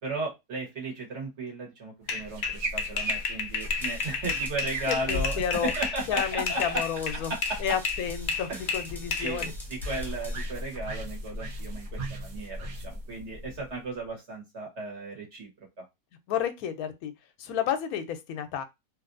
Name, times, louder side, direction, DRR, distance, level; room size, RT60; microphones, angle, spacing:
voice 1, 0.0-6.8 7.1-7.8 8.5-8.6 9.2-15.5 15.8-15.9, right 2 dB, 55° right, 1.5 m, -35 dB
sound 1, 2.1-7.6 7.9-9.5, left 5 dB, 60° left, 0.7 m, -31 dB
sound 2, 2.1-14.0, equal, 75° right, 1.3 m, -37 dB
sound 3, 3.6-10.4, equal, ahead, 0.4 m, -47 dB
voice 2, 4.9-5.7 6.1-7.3 7.6-9.5 16.3-17.1 17.4-18.6, left 8 dB, 85° left, 1.1 m, -31 dB
3.1 x 2.6 x 2.5 m
omnidirectional pair, 1.5 m